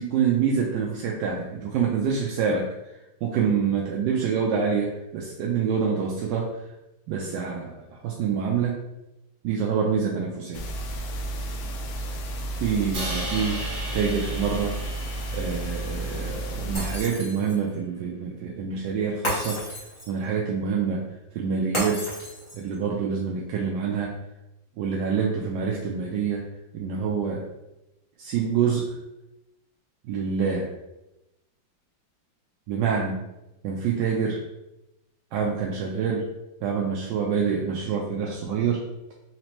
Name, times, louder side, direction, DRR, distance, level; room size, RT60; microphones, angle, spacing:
voice 1, 0.0-2.7 3.2-6.6 7.1-7.7 8.0-8.8 9.4-10.6 12.6-13.6 13.9-14.8 15.3-19.6 20.1-22.1 22.5-24.1 24.8-26.4 26.7-27.5 28.2-28.9 30.0-30.7 32.7-33.2 33.6-34.4 35.3-36.3 36.6-38.8, right 6 dB, 75° right, -2 dB, 1.1 m, -26 dB
sound 1, 10.5-17.0, right 1 dB, 85° left, 0.8 m, -32 dB
Crash cymbal, 12.9-17.1, right 1 dB, 50° right, 1.2 m, -37 dB
Shatter, 16.7-17.7 19.2-20.2 21.7-22.7, equal, 20° left, 1.1 m, -32 dB
4.1 x 2.8 x 3.0 m, 0.93 s
omnidirectional pair, 2.2 m